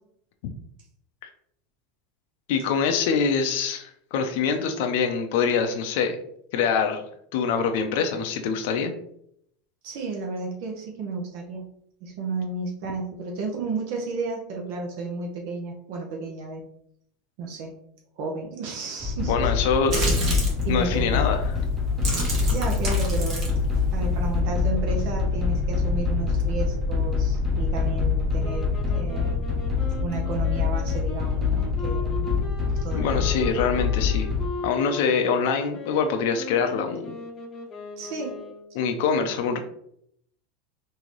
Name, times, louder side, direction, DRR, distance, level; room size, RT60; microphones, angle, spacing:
voice 1, 2.5-6.2 6.5-7.0 7.3-8.9 19.3-20.1 20.7-21.6 32.9-34.3 34.6-37.2 38.8-39.6, left 6 dB, 70° left, 5 dB, 0.5 m, -24 dB
voice 2, 9.8-11.7 12.0-16.6 17.4-17.7 18.2-19.3 20.6-21.3 22.5-23.5 23.9-29.3 30.0-32.3 32.8-33.5 38.0-38.4, right 3 dB, 65° right, 1 dB, 0.8 m, -32 dB
sound 1, 19.0-34.5, left 5 dB, 20° right, 0.9 m, -25 dB
sound 2, 19.9-20.6 21.4-21.6 21.9-24.4, right 1 dB, 40° right, 1.3 m, -28 dB
sound 3, 28.4-38.8, left 3 dB, 30° left, 0.7 m, -38 dB
3.8 x 2.7 x 3.1 m, 0.71 s
supercardioid pair, 135°, 0 cm